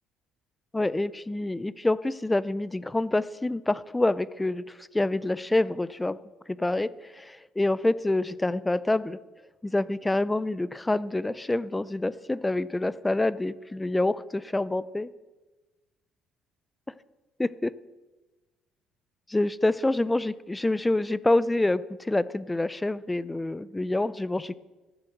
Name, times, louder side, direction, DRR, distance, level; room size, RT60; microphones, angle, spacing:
voice 1, 0.7-6.2 6.5-9.2 9.6-15.1 17.4-17.7 19.3-24.6, left 2 dB, 10° left, 17 dB, 0.4 m, -27 dB
15.0 x 7.5 x 7.8 m, 1.2 s
cardioid pair, 155°, 0 cm